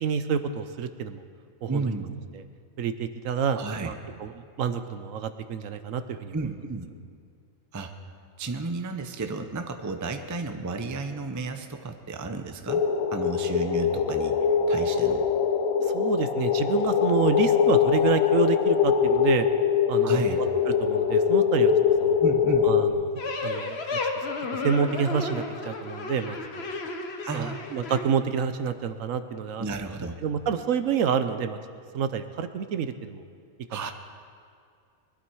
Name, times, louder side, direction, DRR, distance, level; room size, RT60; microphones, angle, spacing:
voice 1, 0.0-1.2 1.6-1.9 2.8-6.4 15.8-19.5 19.9-21.7 22.0-22.2 22.6-23.1 23.4-24.3 24.5-26.7 27.3-29.8 30.2-31.6 31.9-33.2 33.7-33.9, right 7 dB, 70° right, 10 dB, 1.1 m, -28 dB
voice 2, 1.7-2.2 3.5-3.9 6.3-6.9 7.7-7.9 8.4-12.8 13.1-14.4 14.7-15.3 20.0-20.4 22.2-22.7 27.2-27.6 29.6-30.2 33.7-33.9, right 3 dB, 20° right, 6 dB, 0.5 m, -32 dB
sound 1, 12.7-22.9, left 7 dB, 85° left, 1.4 m, -23 dB
sound 2, 23.2-28.0, left 3 dB, 50° left, 1.3 m, -33 dB
21.0 x 12.0 x 4.7 m, 2.3 s
omnidirectional pair, 1.5 m